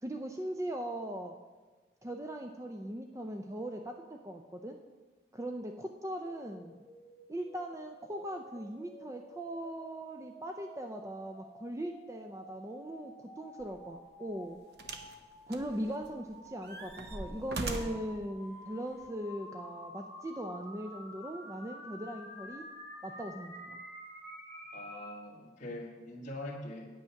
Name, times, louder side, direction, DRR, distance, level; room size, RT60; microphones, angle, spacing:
voice 1, 0.0-1.4 2.0-4.8 5.3-6.8 7.3-14.6 15.5-22.6 23.0-23.8, right 1 dB, 15° right, 3 dB, 0.5 m, -39 dB
sound 1, 6.3-25.2, left 1 dB, ahead, 1.9 m, -51 dB
sound 2, 13.6-13.8 14.8-15.2 15.5-16.2 16.6-18.1 19.0-19.1, right 2 dB, 65° right, 0.9 m, -40 dB
voice 2, 24.7-26.9, left 1 dB, 45° left, -4 dB, 1.6 m, -43 dB
9.0 x 8.7 x 5.7 m, 1.3 s
head